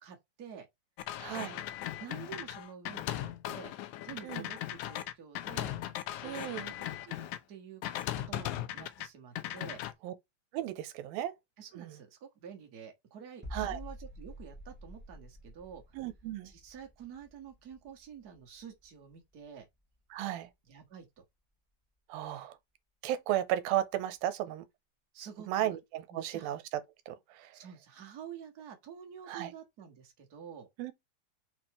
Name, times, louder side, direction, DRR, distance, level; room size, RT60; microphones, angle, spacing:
voice 1, 0.0-0.7 1.3-1.6 2.0-3.7 4.0-5.7 6.1-7.8 8.1-9.8 11.6-15.8 16.4-19.7 20.6-21.2 25.1-25.8 26.1-26.6 27.5-30.7, right 8 dB, 40° right, 1.4 m, -49 dB
sound 1, 1.0-7.4 7.8-9.1 9.4-9.9, left 13 dB, 80° left, 1.8 m, -38 dB
voice 2, 1.2-1.5 4.2-4.5 6.2-6.7 10.0-10.1 10.5-11.3 11.8-11.9 13.5-13.8 15.9-16.5 20.1-20.5 22.1-22.5 23.0-24.6 25.5-26.6 27.1-27.5 29.3-29.5 30.8-30.9, right 12 dB, 80° right, 2.5 m, -34 dB
sound 2, 13.4-19.1 19.4-19.6, equal, 10° right, 0.5 m, -48 dB
5.6 x 4.5 x 4.2 m
omnidirectional pair, 4.2 m